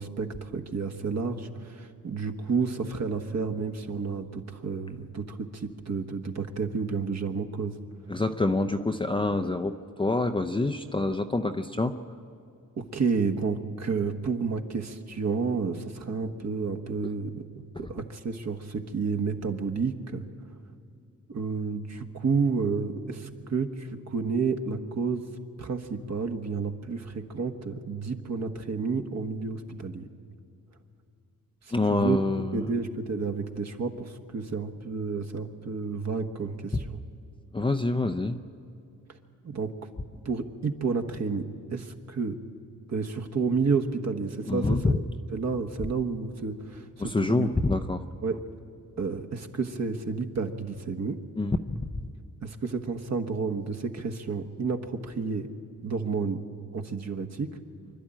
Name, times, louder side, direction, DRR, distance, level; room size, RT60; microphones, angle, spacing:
voice 1, 0.0-7.8 12.8-20.2 21.3-25.3 25.6-30.1 31.6-32.2 32.5-37.0 39.4-39.7 40.2-42.4 42.9-45.0 45.3-46.9 47.3-47.5 48.2-48.4 49.0-51.2 52.4-55.5 55.8-56.4 56.7-57.6, right 5 dB, 50° right, 6 dB, 1.4 m, -30 dB
voice 2, 8.1-12.0 17.8-17.9 31.7-32.6 36.7-36.8 37.5-38.4 44.5-44.9 47.0-48.0 51.4-51.8, left 2 dB, 15° left, 4 dB, 0.6 m, -26 dB
25.5 x 12.0 x 9.0 m, 2.5 s
cardioid pair, 100°, 35 cm